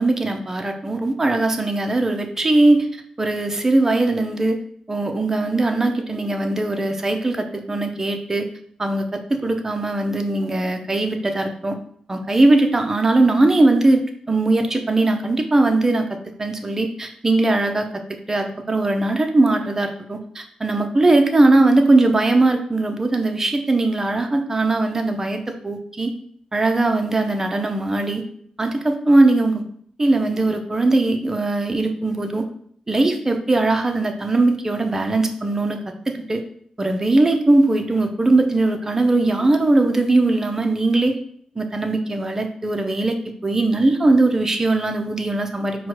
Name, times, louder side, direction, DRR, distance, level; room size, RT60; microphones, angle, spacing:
voice 1, 0.0-2.9 3.2-4.6 4.9-8.5 8.8-11.8 12.1-14.0 14.3-16.1 16.4-17.9 18.3-26.1 26.5-28.2 28.6-29.6 30.0-32.4 32.9-35.8 36.1-36.4 36.8-41.2 41.6-43.2 43.4-45.9, right 2 dB, 20° right, 5 dB, 0.5 m, -19 dB
4.4 x 2.1 x 4.6 m, 0.63 s
wide cardioid pair, 110°, 2 cm